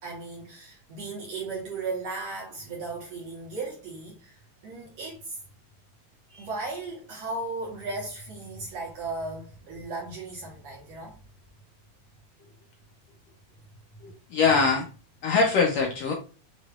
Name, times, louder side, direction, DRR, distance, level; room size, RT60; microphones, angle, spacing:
voice 1, 0.0-5.4 6.3-11.2, right 3 dB, 60° right, 2.2 m, -36 dB
voice 2, 14.0-14.9 15.2-16.1, left 4 dB, 70° left, 1.6 m, -23 dB
6.9 x 3.1 x 2.3 m
omnidirectional pair, 3.7 m